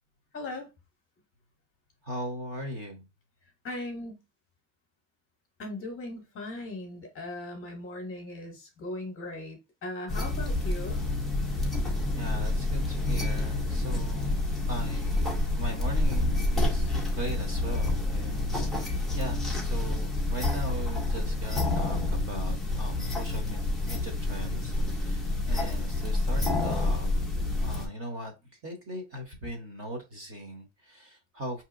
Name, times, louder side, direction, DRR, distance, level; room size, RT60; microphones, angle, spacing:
voice 1, 0.3-0.7 3.6-4.2 5.6-11.0, left 2 dB, 25° left, 0.9 m, -38 dB
voice 2, 2.0-3.1 12.1-27.2 27.6-31.6, equal, 25° right, 0.9 m, -39 dB
sound 1, 10.1-27.9, left 2 dB, ahead, 0.4 m, -28 dB
5.5 x 2.8 x 2.5 m
cardioid pair, 180°, 49 cm